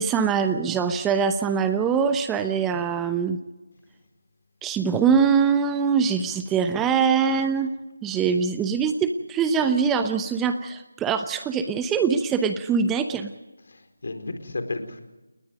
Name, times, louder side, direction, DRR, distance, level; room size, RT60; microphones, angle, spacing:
voice 1, 0.0-3.4 4.6-7.7 8.0-13.3, right 6 dB, 10° right, 9 dB, 0.9 m, -23 dB
voice 2, 8.1-8.4 13.7-15.0, left 2 dB, 60° left, 6 dB, 4.4 m, -34 dB
30.0 x 20.0 x 5.3 m, 1.0 s
figure-of-eight pair, 160°, 0 cm